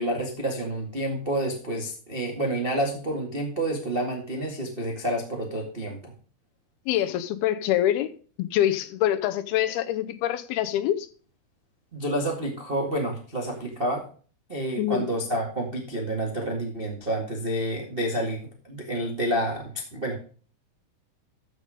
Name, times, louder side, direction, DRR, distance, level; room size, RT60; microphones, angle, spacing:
voice 1, 0.0-6.1 11.9-14.0 14.5-18.4 18.6-20.2, right 1 dB, 45° right, 0.7 m, -29 dB
voice 2, 6.9-8.1 8.4-11.1 14.8-15.1, left 12 dB, 80° left, 2.6 m, -25 dB
14.0 x 5.3 x 4.9 m
omnidirectional pair, 4.6 m